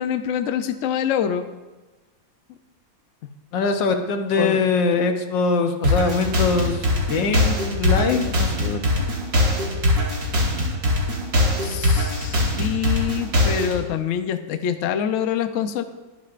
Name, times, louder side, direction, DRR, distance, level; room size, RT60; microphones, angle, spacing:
voice 1, 0.0-1.5 4.4-4.6 11.6-15.8, left 9 dB, 85° left, 8 dB, 0.6 m, -25 dB
voice 2, 3.5-9.1, left 4 dB, 70° left, 6 dB, 1.5 m, -23 dB
sound 1, 5.8-13.8, left 1 dB, 65° right, 2.6 m, -21 dB
22.0 x 7.6 x 2.5 m, 1.2 s
omnidirectional pair, 2.1 m